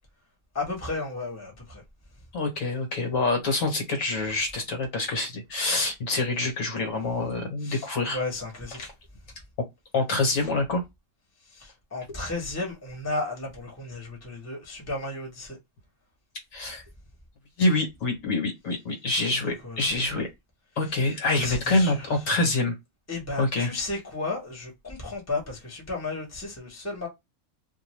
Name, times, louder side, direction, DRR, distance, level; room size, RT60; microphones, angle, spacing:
voice 1, 0.5-1.8 7.6-8.9 11.5-15.6 19.6-19.9 20.9-21.0 21.4-22.1 23.1-27.1, left 2 dB, 10° left, 0.9 m, -34 dB
voice 2, 2.3-8.2 8.8-8.9 9.9-10.8 16.5-16.8 17.6-20.3 20.8-22.7 23.4-23.7, left 2 dB, 65° left, 1.3 m, -26 dB
2.6 x 2.2 x 3.1 m
omnidirectional pair, 1.5 m